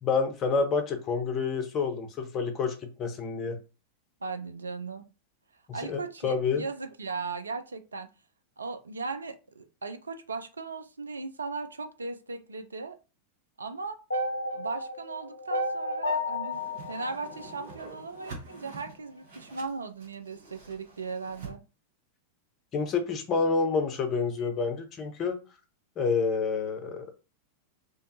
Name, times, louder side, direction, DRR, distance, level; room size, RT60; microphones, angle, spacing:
voice 1, 0.0-3.6 5.9-6.6 22.7-25.4 26.0-27.2, left 5 dB, 30° left, 0.6 m, -28 dB
voice 2, 4.2-5.0 5.7-8.1 8.6-13.0 13.6-14.0 14.5-21.6, right 4 dB, 75° right, 0.3 m, -37 dB
sound 1, 14.1-18.3, left 1 dB, 75° left, 0.4 m, -33 dB
Whoosh swoosh swish, 16.5-21.5, right 4 dB, 60° right, 0.9 m, -47 dB
2.4 x 2.2 x 2.6 m
figure-of-eight pair, 90°, 0 cm